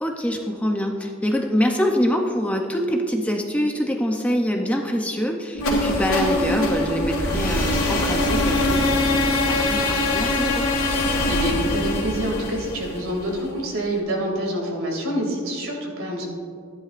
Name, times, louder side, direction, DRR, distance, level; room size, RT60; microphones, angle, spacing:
voice 1, 0.0-10.6, equal, 5° left, 2 dB, 0.6 m, -25 dB
sound 1, 5.5-13.5, left 1 dB, 75° left, 2.2 m, -22 dB
voice 2, 11.2-16.3, equal, 70° right, -1 dB, 2.6 m, -27 dB
14.0 x 11.0 x 2.5 m, 2.4 s
head